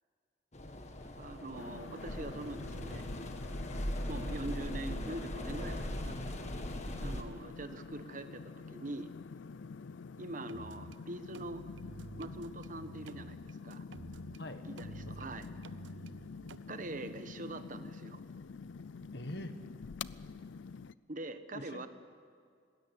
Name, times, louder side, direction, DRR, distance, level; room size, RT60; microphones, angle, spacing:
sound 1, 0.5-7.2, left 1 dB, 35° left, 1.6 m, -39 dB
voice 1, 1.2-3.1 4.1-6.4 6.8-9.1 10.2-11.6 12.2-13.8 14.6-15.5 16.7-18.2 21.1-21.9, right 2 dB, 45° right, 10 dB, 1.2 m, -43 dB
sound 2, 1.6-20.9, left 5 dB, 75° left, 0.5 m, -47 dB
sound 3, 10.5-11.0 11.3-14.4 14.8-16.6, right 4 dB, 75° right, 0.7 m, -51 dB
voice 2, 19.1-19.6 21.5-21.9, left 1 dB, 60° left, 8 dB, 1.5 m, -43 dB
20.0 x 16.5 x 9.9 m, 2.2 s
head